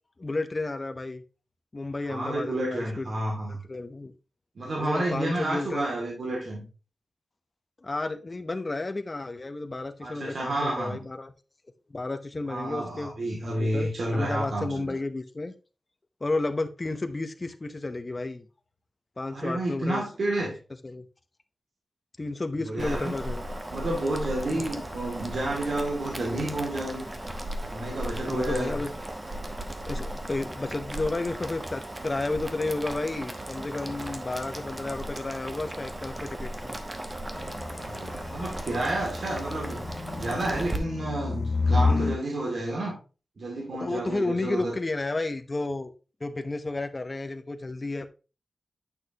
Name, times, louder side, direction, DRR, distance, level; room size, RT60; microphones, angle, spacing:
voice 1, 0.2-1.2 1.7-3.1 3.5-4.1 4.8-5.9 7.8-11.3 11.9-13.1 13.6-15.5 16.2-18.5 19.2-20.0 20.8-21.1 22.2-23.4 24.5-24.8 28.3-28.9 29.9-36.8 43.8-45.9 46.2-48.1, left 2 dB, 30° left, 8 dB, 0.8 m, -32 dB
voice 2, 2.1-3.6 4.6-6.6 10.0-11.0 12.5-15.0 19.3-20.6 22.6-23.1 23.7-27.0 27.7-28.8 37.8-39.8 40.1-43.0 43.4-44.7, right 1 dB, 65° right, -2 dB, 2.3 m, -30 dB
Boiling, 22.8-40.8, right 1 dB, 20° right, 1.0 m, -36 dB
sound 1, 37.3-42.2, left 3 dB, 60° left, 0.3 m, -29 dB
9.0 x 6.3 x 2.9 m, 0.33 s
wide cardioid pair, 125°, 0 cm